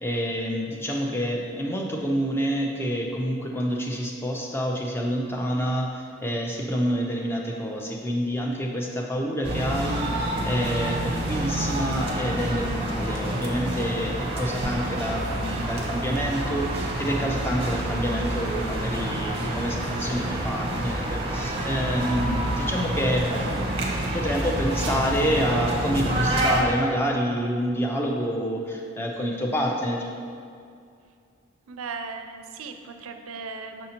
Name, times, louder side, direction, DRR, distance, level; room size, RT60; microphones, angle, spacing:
voice 1, 0.0-23.6 24.1-30.0, equal, 10° left, 0 dB, 0.4 m, -28 dB
sound 1, 9.4-26.6, right 1 dB, 25° right, 0.6 m, -28 dB
voice 2, 31.7-33.9, right 4 dB, 80° right, 6 dB, 0.4 m, -37 dB
6.3 x 5.3 x 2.9 m, 2.4 s
head